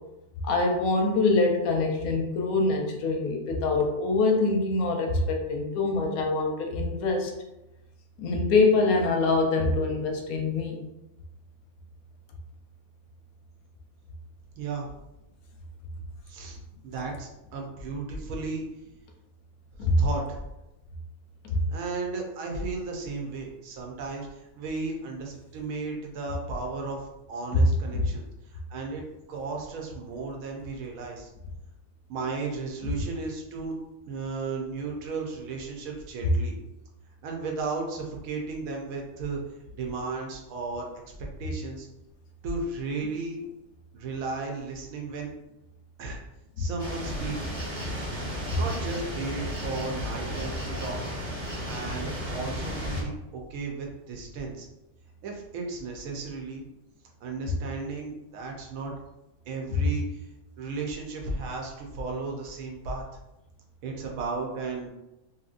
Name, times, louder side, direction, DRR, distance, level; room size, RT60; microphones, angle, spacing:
voice 1, 0.4-7.3 8.2-10.8 19.8-20.0 21.4-21.6 27.5-27.6 27.9-28.0 46.6-46.7 59.7-59.8, left 3 dB, 85° left, 2 dB, 1.1 m, -24 dB
voice 2, 14.6-14.9 16.3-16.6 16.8-18.6 19.8-20.4 21.7-29.0 29.3-31.3 32.1-33.8 34.1-36.5 37.2-39.4 39.7-41.1 41.4-41.9 42.4-43.4 43.9-45.3 46.0-46.2 46.6-47.4 48.5-51.0 51.6-54.7 55.2-56.6 57.2-58.9 59.5-60.2 60.6-63.0 63.8-64.9, right 3 dB, 80° right, 1 dB, 1.1 m, -34 dB
sound 1, 46.8-53.0, equal, 35° right, 0.9 m, -34 dB
2.9 x 2.6 x 2.4 m, 0.94 s
omnidirectional pair, 1.5 m